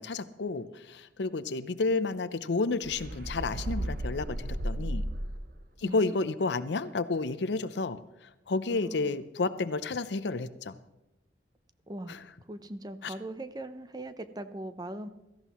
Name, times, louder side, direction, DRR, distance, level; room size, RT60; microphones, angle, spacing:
voice 1, 0.0-5.0 5.8-10.8 12.1-12.2 13.0-13.1, left 3 dB, 80° left, 14 dB, 0.6 m, -31 dB
sound 1, 2.8-5.6, right 1 dB, 55° right, 0.9 m, -34 dB
voice 2, 5.8-6.2 8.7-9.1 11.9-15.1, right 1 dB, 20° right, 10 dB, 0.6 m, -40 dB
17.0 x 14.5 x 3.0 m, 0.97 s
head